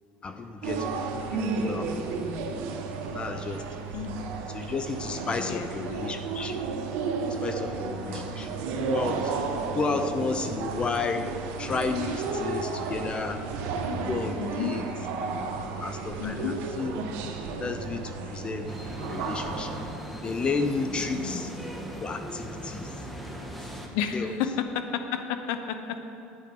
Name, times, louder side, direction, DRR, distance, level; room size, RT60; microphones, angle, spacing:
voice 1, 0.2-0.9 1.3-2.4 3.1-3.6 4.5-6.6 7.4-8.6 8.9-9.3 9.7-11.3 11.6-13.4 14.1-14.8 15.8-16.9 17.6-18.8 19.1-19.8 20.2-21.5 22.0-23.1 24.1-24.3, left 4 dB, 25° left, 8 dB, 0.6 m, -32 dB
sound 1, 0.6-19.9, right 4 dB, 70° right, 1.4 m, -33 dB
voice 2, 3.9-4.2 5.4-5.7 8.0-8.4 9.9-10.1 13.9-14.1 14.4-14.8 16.2-16.6 21.1-21.4 23.9-26.0, left 8 dB, 75° left, 8 dB, 0.7 m, -32 dB
sound 2, 18.7-23.9, equal, ahead, 1.4 m, -38 dB
11.5 x 9.3 x 5.3 m, 2.8 s
supercardioid pair, 115°, 4 cm